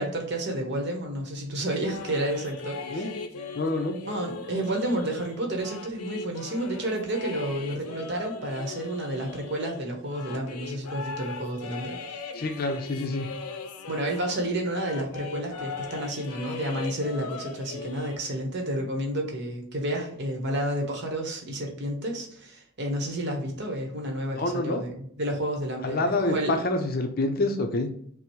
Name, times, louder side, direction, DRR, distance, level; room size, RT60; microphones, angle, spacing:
voice 1, 0.0-3.1 4.0-12.0 13.9-26.6, right 1 dB, 50° right, 2 dB, 1.0 m, -30 dB
sound 1, 1.7-14.5 14.7-18.2, left 4 dB, 90° left, 0.5 m, -39 dB
voice 2, 3.6-4.0 12.3-13.3 24.3-24.8 25.8-27.9, left 2 dB, 40° left, 5 dB, 0.5 m, -27 dB
5.7 x 2.0 x 3.1 m, 0.66 s
head